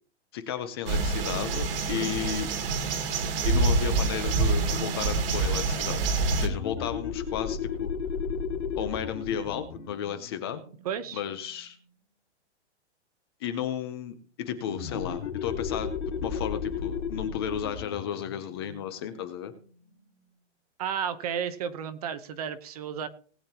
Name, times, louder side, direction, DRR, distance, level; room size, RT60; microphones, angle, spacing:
voice 1, 0.3-2.5 3.4-6.0 6.4-7.9 8.8-10.6 11.1-11.8 13.4-15.9 16.2-19.5, left 9 dB, 20° left, 10 dB, 0.7 m, -33 dB
sound 1, 0.9-6.5, right 3 dB, 50° right, 2.0 m, -26 dB
sound 2, 6.3-11.6 14.6-19.9, left 6 dB, 80° left, 2.5 m, -35 dB
voice 2, 10.8-11.2 20.8-23.1, right 8 dB, 35° right, 11 dB, 0.9 m, -32 dB
19.5 x 8.6 x 2.9 m, 0.43 s
hypercardioid pair, 170°, 35 cm